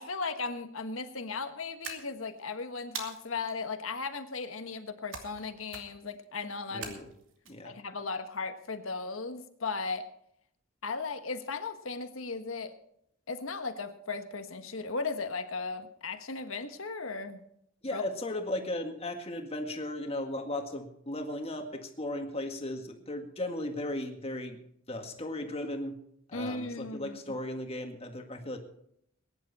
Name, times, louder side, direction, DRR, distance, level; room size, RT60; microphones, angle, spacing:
voice 1, 0.0-6.9 7.6-10.1 10.8-12.7 13.3-17.4 17.9-18.0 26.3-27.2, left 4 dB, 80° left, 8 dB, 1.5 m, -36 dB
sound 1, 1.8-2.4 2.9-3.5 5.1-5.4 5.7-6.1 6.8-7.5, right 5 dB, 70° right, 2.7 m, -42 dB
voice 2, 6.7-7.1 7.5-7.8 17.8-24.6 24.9-26.0 26.3-28.6, left 1 dB, 30° left, 4 dB, 1.9 m, -36 dB
21.0 x 10.5 x 4.3 m, 0.74 s
head